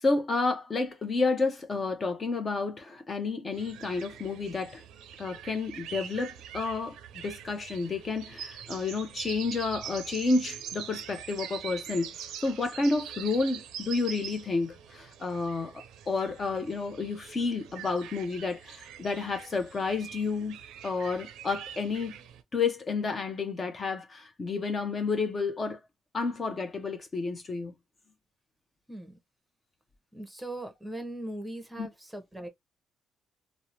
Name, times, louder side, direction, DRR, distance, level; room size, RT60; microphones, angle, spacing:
voice 1, 0.0-4.8 5.2-20.6 20.8-22.2 22.5-25.8 26.1-27.7 31.8-31.9, left 3 dB, 40° left, 0.6 m, -30 dB
sound 1, 3.5-22.4, right 9 dB, 90° right, 0.4 m, -44 dB
voice 2, 28.9-29.2 30.1-32.5, right 1 dB, 5° right, 0.8 m, -39 dB
2.6 x 2.0 x 2.9 m
cardioid pair, 90°, 0 cm